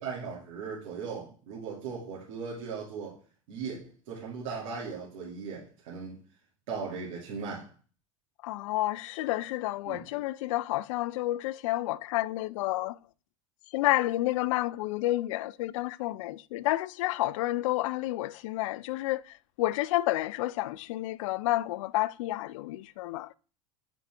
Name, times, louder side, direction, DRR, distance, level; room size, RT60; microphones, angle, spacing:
voice 1, 0.0-3.2 3.5-3.8 4.1-6.2 6.7-7.7 9.9-10.0, right 5 dB, 75° right, 2.4 m, -38 dB
voice 2, 8.4-13.0 13.7-23.4, left 17 dB, 75° left, 0.4 m, -30 dB
7.7 x 5.1 x 3.4 m
hypercardioid pair, 90°, 17 cm